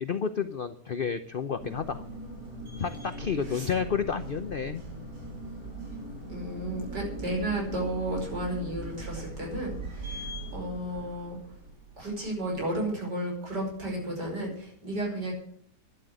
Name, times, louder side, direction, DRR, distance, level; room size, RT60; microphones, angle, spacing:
voice 1, 0.0-2.0 2.8-4.8, left 6 dB, 55° left, 10 dB, 0.6 m, -30 dB
sound 1, 1.6-12.6, right 2 dB, 60° right, 4.4 m, -40 dB
voice 2, 6.3-11.4 12.0-15.3, right 1 dB, 85° right, -1 dB, 5.9 m, -33 dB
11.5 x 11.5 x 7.8 m, 0.65 s
omnidirectional pair, 1.8 m